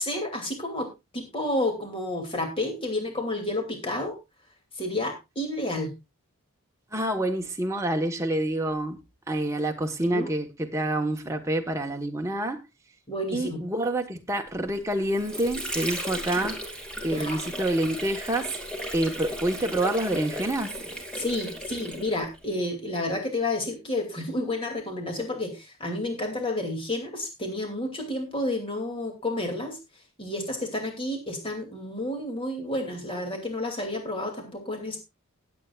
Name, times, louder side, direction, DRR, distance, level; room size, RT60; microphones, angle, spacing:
voice 1, 0.0-4.2 4.8-5.9 10.1-10.3 13.1-13.6 17.1-17.5 21.2-29.8 30.2-35.0, left 1 dB, 25° left, 2.6 m, -30 dB
voice 2, 6.9-9.0 9.3-12.6 13.3-16.6 17.0-18.5 18.9-20.7, right 1 dB, 15° right, 1.2 m, -27 dB
Water / Sink (filling or washing), 14.8-22.4, equal, 5° left, 2.2 m, -35 dB
19.0 x 8.0 x 2.4 m
head